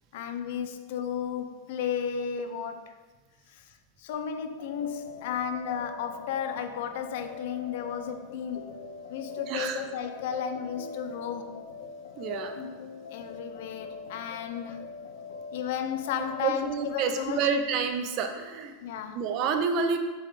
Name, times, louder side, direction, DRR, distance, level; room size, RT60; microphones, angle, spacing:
voice 1, 0.1-3.0 3.5-8.7 9.1-11.6 13.1-14.9 15.5-17.4 18.8-19.2, left 8 dB, 60° left, 8 dB, 0.6 m, -34 dB
sound 1, 4.6-16.5, left 4 dB, 90° left, 0.9 m, -43 dB
voice 2, 9.5-9.8 12.2-12.7 16.4-18.7 19.1-20.0, right 5 dB, 40° right, 7 dB, 0.6 m, -29 dB
6.6 x 3.9 x 4.9 m, 1.3 s
supercardioid pair, 160°, 0 cm